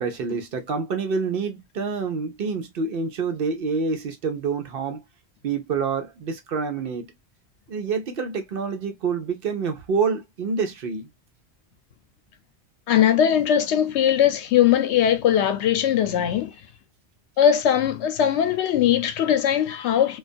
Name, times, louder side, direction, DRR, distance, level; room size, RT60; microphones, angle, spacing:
voice 1, 0.0-5.0 5.4-7.1 7.7-11.1, right 5 dB, 65° right, 0.8 m, -27 dB
voice 2, 12.9-16.5 17.4-20.2, left 9 dB, 90° left, 0.9 m, -20 dB
2.3 x 2.2 x 2.4 m
omnidirectional pair, 1.1 m